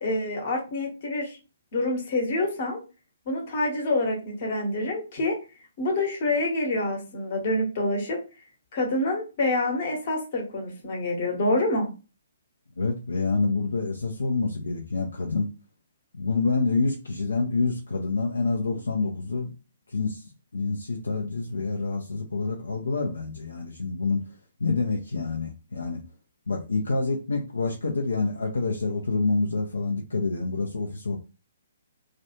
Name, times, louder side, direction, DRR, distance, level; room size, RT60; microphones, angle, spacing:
voice 1, 0.0-1.3 1.7-2.8 3.3-5.4 5.8-8.2 8.7-11.9, left 2 dB, 40° left, 1 dB, 0.9 m, -27 dB
voice 2, 12.8-15.5 16.1-19.5 19.9-20.2 20.5-24.2 24.6-26.0 26.5-31.2, left 3 dB, 70° left, 1 dB, 0.4 m, -27 dB
2.4 x 2.3 x 2.9 m, 0.31 s
figure-of-eight pair, 130°, 0 cm